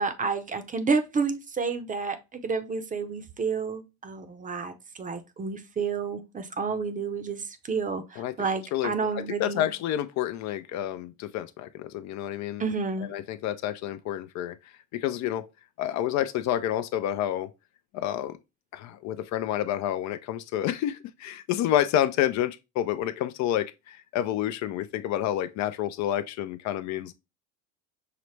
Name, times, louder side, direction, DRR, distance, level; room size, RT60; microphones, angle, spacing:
voice 1, 0.0-9.7 12.6-13.1, right 5 dB, 25° right, 0.6 m, -30 dB
voice 2, 8.7-12.6 13.0-14.5 14.9-15.5 15.8-17.5 17.9-18.4 18.7-27.1, left 12 dB, 55° left, 0.4 m, -29 dB
5.7 x 2.0 x 3.2 m
supercardioid pair, 100°, 35 cm